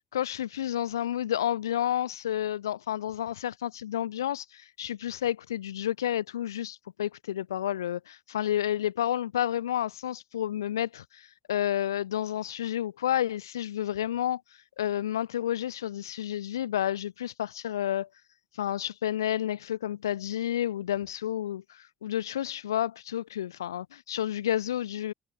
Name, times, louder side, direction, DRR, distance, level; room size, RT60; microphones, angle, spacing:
voice 1, 0.1-14.4 14.8-18.1 18.6-25.1, left 11 dB, 80° left, 2.4 m, -30 dB
figure-of-eight pair, 55°, 2 cm